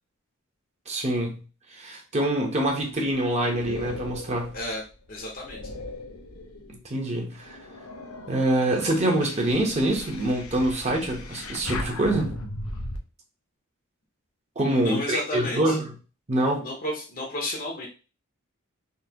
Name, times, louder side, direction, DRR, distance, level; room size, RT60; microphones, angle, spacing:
voice 1, 0.9-1.4 1.7-4.5 6.7-7.6 8.3-12.3 14.6-15.9 16.3-16.6, right 1 dB, 30° right, 0.9 m, -25 dB
sound 1, 2.6-6.8 7.3-13.0, left 2 dB, 85° left, 0.8 m, -38 dB
voice 2, 5.1-5.6 14.6-15.8 16.6-17.9, left 1 dB, 40° left, 0.8 m, -32 dB
3.9 x 2.9 x 2.8 m
head